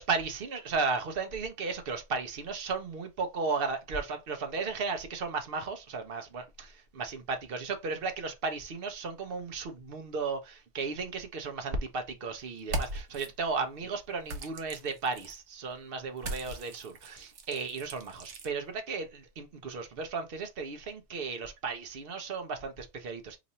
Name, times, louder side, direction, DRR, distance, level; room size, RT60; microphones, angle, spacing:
voice 1, 0.0-23.4, right 4 dB, 55° right, 0.9 m, -35 dB
sound 1, 12.6-13.3 14.3-15.4 16.2-18.5, right 2 dB, 85° right, 1.1 m, -39 dB
3.0 x 2.5 x 4.1 m
omnidirectional pair, 1.2 m